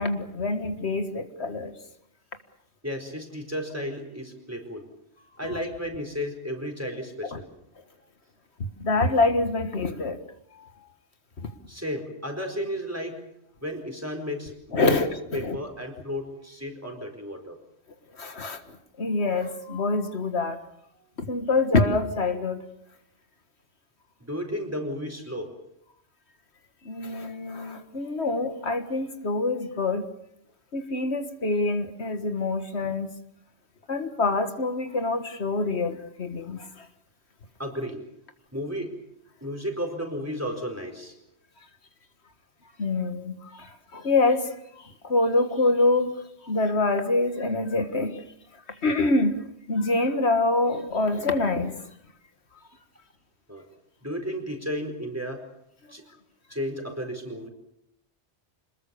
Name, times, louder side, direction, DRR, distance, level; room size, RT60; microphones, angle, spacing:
voice 1, 0.0-1.7 8.8-10.2 14.7-15.6 18.2-18.6 19.0-20.6 21.2-22.6 26.9-30.1 30.7-33.1 33.9-36.9 42.8-46.2 46.4-48.2 48.8-51.8, left 2 dB, 80° left, 8 dB, 1.9 m, -25 dB
voice 2, 2.8-4.8 5.4-7.5 11.7-13.2 13.6-15.0 15.3-17.6 24.2-25.5 37.6-38.0 38.5-38.9 39.4-41.1 53.5-53.6 54.0-55.4 55.9-56.0 56.5-57.5, equal, 15° right, 4 dB, 4.4 m, -33 dB
27.0 x 20.5 x 7.0 m, 0.77 s
omnidirectional pair, 1.1 m